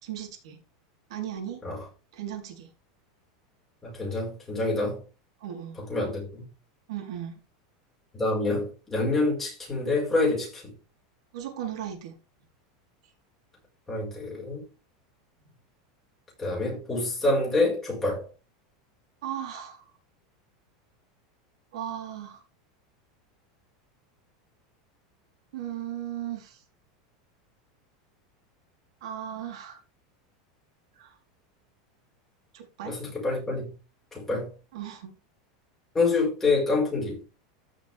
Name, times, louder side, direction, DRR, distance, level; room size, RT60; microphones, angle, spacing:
voice 1, 0.0-0.6 1.1-1.6 2.1-2.7 5.4-5.8 6.9-7.4 11.3-12.1 13.0-13.1 19.2-19.9 21.7-22.4 25.5-26.6 29.0-29.8 30.9-31.2 32.5-33.0 34.7-35.1, right 10 dB, 80° right, 4.0 m, -36 dB
voice 2, 3.8-5.0 5.8-6.4 8.1-10.7 13.9-14.7 16.4-18.3 32.8-33.7 34.1-34.5 35.9-37.2, left 2 dB, 10° left, 5.2 m, -27 dB
14.5 x 6.2 x 3.6 m
supercardioid pair, 160°, 3 cm